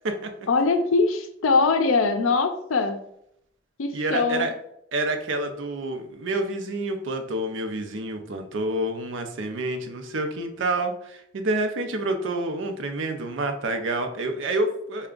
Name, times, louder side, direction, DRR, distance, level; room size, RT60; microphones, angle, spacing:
voice 1, 0.5-3.0 3.8-4.5, left 4 dB, 90° left, 7 dB, 0.5 m, -22 dB
voice 2, 3.9-4.5 4.9-15.1, right 2 dB, 65° right, 6 dB, 0.5 m, -28 dB
3.4 x 2.2 x 3.7 m, 0.73 s
head